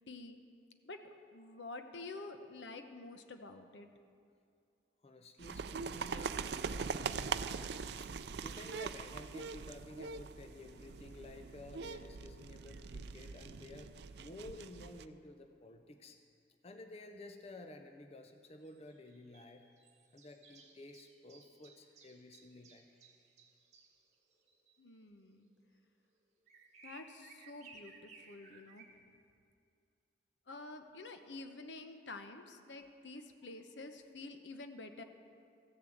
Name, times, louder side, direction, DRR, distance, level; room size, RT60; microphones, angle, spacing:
voice 1, 0.1-0.4 0.8-1.0 1.3-3.9 24.8-25.5 26.8-28.9 30.5-35.0, left 2 dB, 85° left, 7 dB, 0.9 m, -49 dB
voice 2, 5.0-6.4 6.7-7.6 8.4-13.9 14.2-16.2 16.6-19.7 20.1-22.9, left 2 dB, 35° left, 6 dB, 0.6 m, -52 dB
sound 1, 5.4-15.1, right 5 dB, 70° right, 0.4 m, -42 dB
sound 2, 18.6-24.8 25.6-25.7 26.5-28.9, right 4 dB, 40° right, 1.5 m, -60 dB
15.0 x 7.1 x 7.8 m, 2.4 s
head